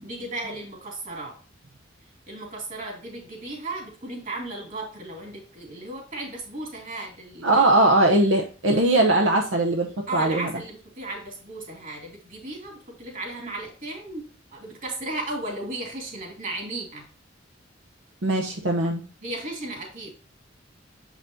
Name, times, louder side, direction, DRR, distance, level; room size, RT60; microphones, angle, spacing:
voice 1, 0.0-1.4 2.3-8.2 10.1-17.0 19.2-20.1, right 2 dB, 45° right, 1 dB, 2.6 m, -35 dB
voice 2, 7.4-10.5 18.2-19.0, right 2 dB, 85° right, 2 dB, 0.9 m, -20 dB
7.1 x 5.8 x 2.7 m, 0.37 s
head